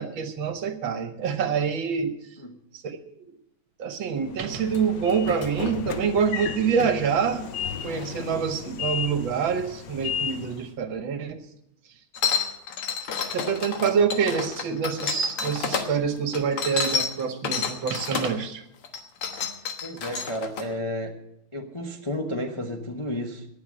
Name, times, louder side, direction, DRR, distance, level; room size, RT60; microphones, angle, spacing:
voice 1, 0.0-2.2 2.8-3.1 3.8-7.5 7.8-11.4 13.3-18.6, right 6 dB, 65° right, 9 dB, 1.8 m, -26 dB
Train / Sliding door, 4.2-10.7, left 7 dB, 65° left, 1.4 m, -34 dB
sound 1, 12.1-15.9 16.3-18.4 18.8-20.6, left 6 dB, 90° left, 2.3 m, -29 dB
voice 2, 19.8-21.2 21.5-23.5, left 1 dB, 25° left, 2 dB, 0.7 m, -32 dB
18.5 x 6.9 x 7.6 m, 0.77 s
omnidirectional pair, 2.4 m